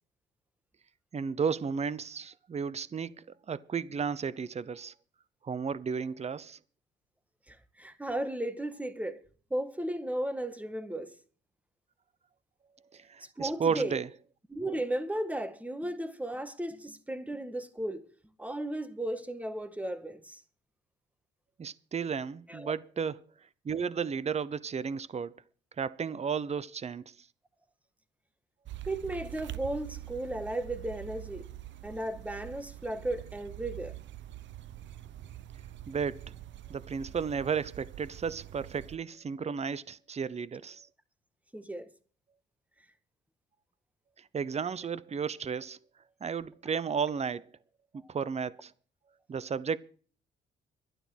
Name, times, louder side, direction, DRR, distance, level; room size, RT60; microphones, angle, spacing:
voice 1, 1.1-3.1 3.5-4.9 5.4-6.6 12.9-14.1 21.6-23.2 23.6-25.3 25.8-27.0 35.9-36.2 36.7-40.8 44.3-45.8 46.2-47.5 48.1-48.7 49.3-49.8, right 6 dB, 35° right, 0.8 m, -33 dB
voice 2, 7.5-9.2 9.5-11.2 13.2-14.0 14.5-18.1 18.4-20.4 22.5-22.7 28.9-31.5 31.8-34.0 41.5-41.9 47.9-48.1, right 1 dB, 5° right, 1.7 m, -35 dB
sound 1, 28.7-39.0, right 14 dB, 70° right, 0.8 m, -45 dB
12.0 x 12.0 x 6.2 m
cardioid pair, 90°, 20 cm